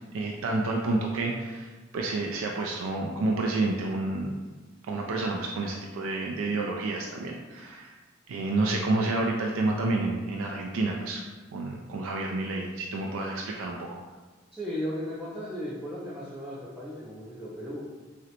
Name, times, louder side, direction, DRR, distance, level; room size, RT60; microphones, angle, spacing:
voice 1, 0.1-4.4 4.9-7.9 8.3-11.2 11.5-14.0, right 2 dB, 85° right, 0 dB, 0.3 m, -29 dB
voice 2, 14.5-17.8, equal, ahead, -8 dB, 0.3 m, -36 dB
3.7 x 2.1 x 2.8 m, 1.3 s
head